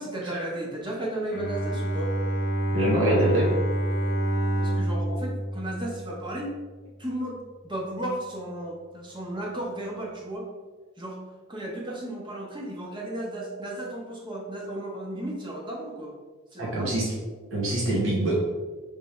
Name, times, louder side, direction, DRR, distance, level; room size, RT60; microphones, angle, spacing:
voice 1, 0.0-2.1 4.6-6.5 7.0-10.5 11.0-11.2 11.5-16.1 16.5-17.0, right 1 dB, 20° right, -3 dB, 0.9 m, -34 dB
Bowed string instrument, 1.3-6.6, right 1 dB, 60° left, 0.7 m, -28 dB
voice 2, 2.7-3.5 16.6-17.1 17.5-18.3, right 1 dB, 70° right, -5 dB, 1.0 m, -24 dB
3.5 x 3.3 x 4.3 m, 1.4 s
head